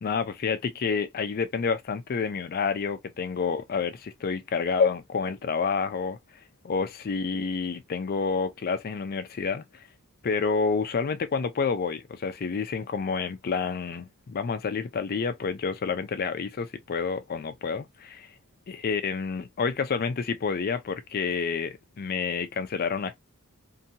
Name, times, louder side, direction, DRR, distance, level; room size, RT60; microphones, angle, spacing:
voice 1, 0.0-6.2 6.6-9.9 10.2-18.3 18.7-23.1, left 5 dB, 45° left, 0.4 m, -29 dB
2.7 x 2.2 x 2.7 m
head